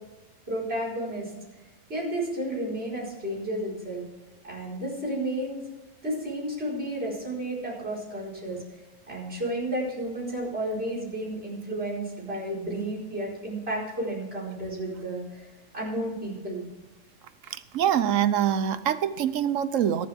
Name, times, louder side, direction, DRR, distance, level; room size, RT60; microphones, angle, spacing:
voice 1, 0.5-1.3 1.9-4.0 4.4-5.6 6.0-8.6 9.1-16.6, right 1 dB, 45° right, -5 dB, 5.0 m, -32 dB
voice 2, 17.5-20.1, right 9 dB, 65° right, 13 dB, 1.1 m, -25 dB
23.0 x 7.8 x 3.5 m, 1.1 s
omnidirectional pair, 1.5 m